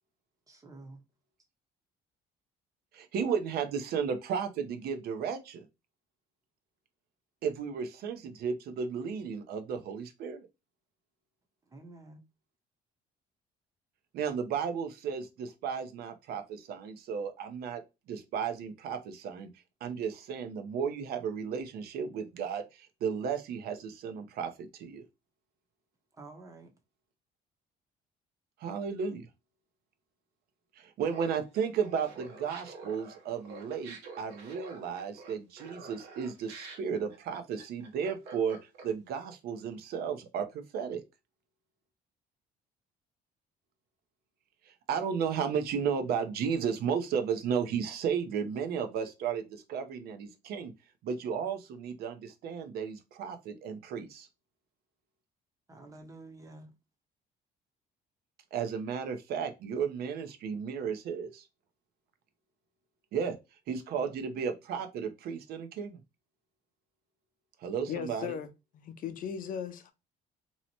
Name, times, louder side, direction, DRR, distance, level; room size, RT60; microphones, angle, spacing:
voice 1, 0.5-1.0 11.6-12.2 26.1-26.7 55.7-56.7, right 2 dB, 20° right, 0.7 m, -50 dB
voice 2, 2.9-5.7 7.4-10.5 14.1-17.8 18.1-19.5 19.8-25.0 28.6-29.3 30.8-38.6 38.8-41.0 44.7-50.7 51.0-54.3 58.5-61.4 63.1-63.4 63.7-66.0 67.6-68.3, right 6 dB, 70° right, 0.6 m, -34 dB
Laughter, 31.1-39.1, right 3 dB, 85° right, 1.0 m, -48 dB
voice 3, 67.9-68.5 68.7-69.9, left 8 dB, 55° left, 0.5 m, -37 dB
2.7 x 2.1 x 2.8 m
cardioid pair, 110°, 17 cm